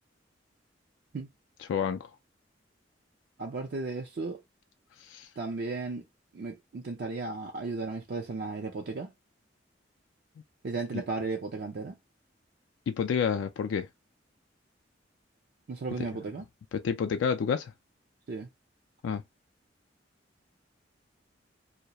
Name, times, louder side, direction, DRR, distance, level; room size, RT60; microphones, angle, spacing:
voice 1, 3.4-4.4 5.4-6.0 6.3-9.1 10.6-12.0 15.7-16.4 18.3-18.5, right 3 dB, 55° right, 0.4 m, -35 dB
voice 2, 12.9-13.9 16.7-17.7 19.0-19.2, left 6 dB, 90° left, 0.3 m, -29 dB
2.3 x 2.0 x 2.7 m
head